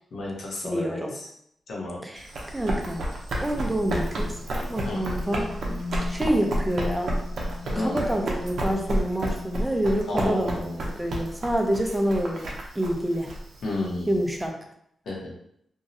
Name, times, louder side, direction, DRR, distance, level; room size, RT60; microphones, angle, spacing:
voice 1, 0.1-1.3 1.7-2.0 4.8-5.0 7.7-7.9 10.1-10.8 13.6-14.2 15.1-15.3, left 2 dB, 70° left, -3 dB, 0.8 m, -31 dB
voice 2, 0.6-1.1 2.0-3.0 3.4-5.5 6.1-7.2 7.8-13.3 14.1-14.5, right 1 dB, 10° right, 2 dB, 0.3 m, -27 dB
Run, 2.2-14.4, right 1 dB, 65° right, 0.5 m, -31 dB
sound 1, 3.5-11.2, left 3 dB, 55° left, 0.4 m, -39 dB
2.6 x 2.0 x 2.6 m, 0.72 s
wide cardioid pair, 150°, 0 cm